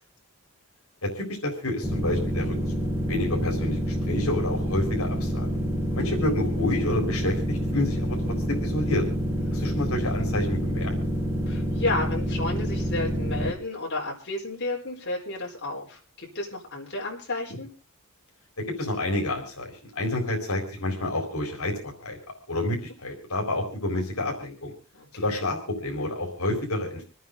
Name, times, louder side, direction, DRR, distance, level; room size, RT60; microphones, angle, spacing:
voice 1, 1.0-5.5 5.9-8.2 8.5-9.0 9.5-11.0 18.8-21.7 22.0-22.2 22.5-24.7 25.1-27.0, left 1 dB, 75° left, 1 dB, 4.2 m, -29 dB
sound 1, 1.8-13.5, equal, 10° right, 3.8 m, -27 dB
voice 2, 11.5-17.7 24.9-25.3, left 2 dB, 55° left, -3 dB, 4.5 m, -32 dB
27.0 x 9.3 x 3.9 m, 0.36 s
head